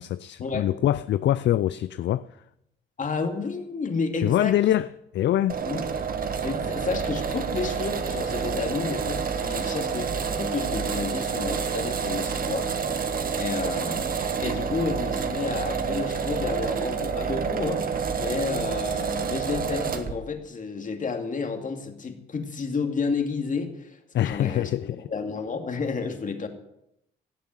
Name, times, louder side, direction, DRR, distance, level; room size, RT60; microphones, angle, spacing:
voice 1, 0.0-2.4 4.2-4.9 5.1-5.6 24.1-25.1, left 12 dB, 65° left, 0.5 m, -24 dB
voice 2, 3.0-4.5 5.7-5.8 6.4-13.1 13.3-17.8 18.1-24.7 25.1-26.5, left 4 dB, 40° left, 2.5 m, -31 dB
sound 1, 5.5-20.2, right 6 dB, 45° right, 1.6 m, -28 dB
17.0 x 7.2 x 9.2 m
cardioid pair, 90°, 20 cm